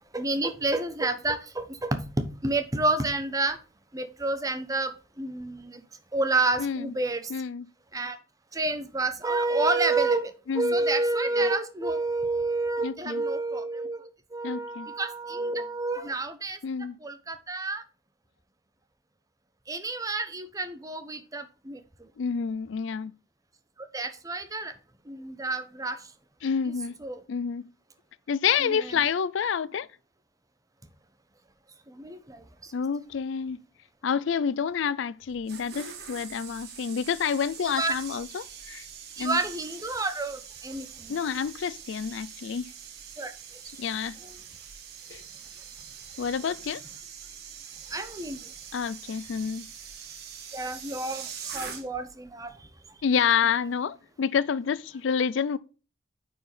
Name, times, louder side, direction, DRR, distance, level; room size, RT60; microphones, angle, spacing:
voice 1, 0.1-3.6 3.9-4.9 5.2-5.8 6.1-7.3 7.9-8.2 8.5-16.6 17.0-17.8 19.7-21.8 23.9-24.7 25.1-26.0 27.0-27.2 28.6-28.8 32.0-32.4 37.6-38.0 39.2-40.9 43.2-43.3 47.9-48.4 50.5-51.3 51.5-52.5, right 2 dB, 20° right, 0.8 m, -29 dB
voice 2, 6.6-6.9 7.3-7.7 10.5-10.8 12.8-13.2 14.4-14.9 16.6-16.9 22.2-23.1 26.4-26.9 27.3-27.6 28.3-29.9 32.7-33.6 34.0-38.9 39.2-39.4 41.1-42.7 43.8-44.2 45.1-45.2 46.2-46.8 48.7-49.7 53.0-55.6, left 7 dB, 65° left, 0.4 m, -28 dB
sound 1, 35.2-52.2 52.4-52.7, right 7 dB, 55° right, 1.6 m, -43 dB
9.4 x 4.7 x 3.2 m
head